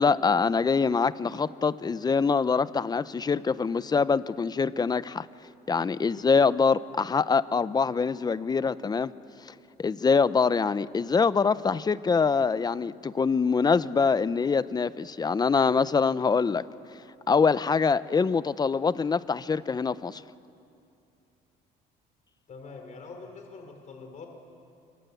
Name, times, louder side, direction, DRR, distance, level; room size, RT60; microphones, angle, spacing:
voice 1, 0.0-5.3 5.7-9.1 9.4-9.5 9.8-16.6 17.3-20.2, left 5 dB, 25° left, 16 dB, 0.7 m, -24 dB
voice 2, 22.5-24.3, left 4 dB, 45° left, 3 dB, 3.8 m, -44 dB
25.5 x 24.0 x 8.3 m, 2.6 s
cardioid pair, 110°, 17 cm